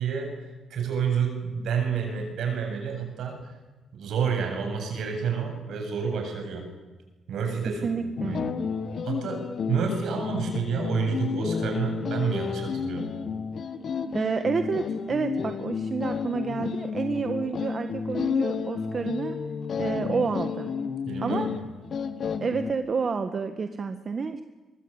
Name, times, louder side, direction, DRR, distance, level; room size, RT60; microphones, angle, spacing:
voice 1, 0.0-3.4 3.9-6.7 7.3-8.6 9.0-13.1 21.1-21.5, right 6 dB, 70° right, 4 dB, 7.8 m, -29 dB
voice 2, 7.8-8.4 14.1-19.4 19.8-20.7 21.2-21.5 22.4-24.4, right 5 dB, 40° right, 8 dB, 1.5 m, -29 dB
sound 1, 8.2-22.7, left 6 dB, 55° left, 1.7 m, -31 dB
23.5 x 22.0 x 8.9 m, 1.2 s
cardioid pair, 90°, 0 cm